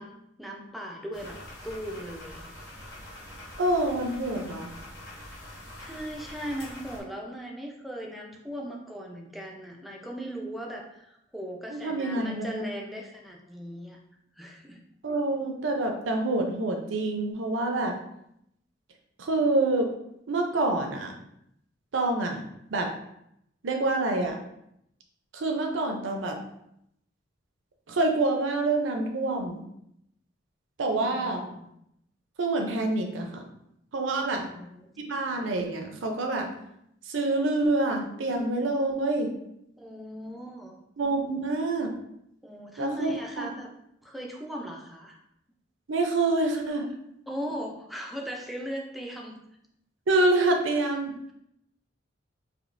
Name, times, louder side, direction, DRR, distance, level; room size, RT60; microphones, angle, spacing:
voice 1, 0.0-1.4 1.6-2.5 5.8-14.0 14.4-14.8 30.9-31.7 34.2-35.0 39.8-40.8 41.4-41.5 42.4-43.7 44.0-45.2 47.3-49.4, equal, ahead, 0 dB, 0.5 m, -38 dB
sound 1, 1.1-7.0, left 1 dB, 55° left, 1.4 m, -44 dB
voice 2, 3.6-4.7 11.7-12.7 15.0-17.9 19.2-19.9 20.3-21.1 21.9-22.4 22.7-22.9 23.6-24.4 25.3-26.4 27.9-29.6 30.8-31.5 32.4-33.4 33.9-34.4 35.1-36.5 37.1-39.3 41.0-41.9 42.8-43.1 43.4-43.5 45.9-46.9 50.1-51.1, right 2 dB, 75° right, 2 dB, 0.6 m, -26 dB
5.0 x 2.9 x 2.5 m, 0.77 s
head